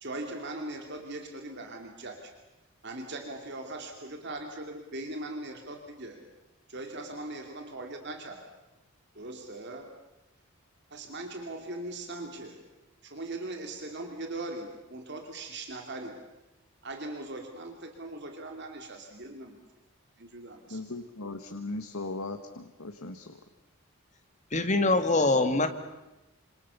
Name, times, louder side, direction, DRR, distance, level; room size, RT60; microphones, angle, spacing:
voice 1, 0.0-2.3 2.8-6.2 6.7-8.4 9.1-9.9 10.9-12.6 13.0-16.2 16.8-19.6 20.2-20.8, right 2 dB, 50° right, 3 dB, 2.8 m, -40 dB
voice 2, 20.7-23.4, left 2 dB, 80° left, 6 dB, 1.6 m, -38 dB
voice 3, 24.5-25.7, left 2 dB, 35° left, 8 dB, 2.0 m, -23 dB
28.0 x 27.0 x 7.1 m, 0.99 s
head